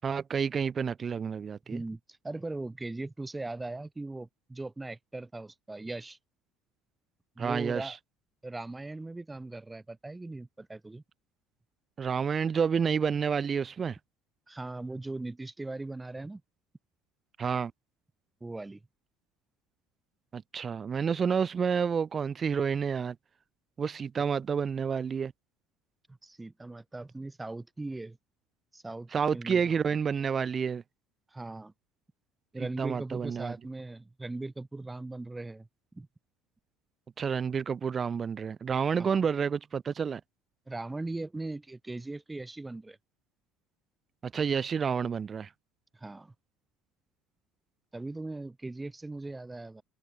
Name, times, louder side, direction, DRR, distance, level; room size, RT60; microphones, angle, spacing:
voice 1, 0.0-1.8 7.4-7.9 12.0-14.0 17.4-17.7 20.3-23.2 23.8-25.3 29.1-30.8 32.6-33.5 37.2-40.2 44.2-45.5, right 6 dB, 35° right, 7.2 m, -29 dB
voice 2, 1.7-2.0 2.2-6.2 7.4-8.0 8.4-11.0 14.5-16.4 18.4-18.8 26.2-28.2 28.7-29.6 31.3-31.7 32.5-35.7 35.9-36.1 39.0-39.2 40.7-43.0 45.9-46.3 47.9-49.8, right 2 dB, 15° right, 7.5 m, -39 dB
figure-of-eight pair, 60°, 0 cm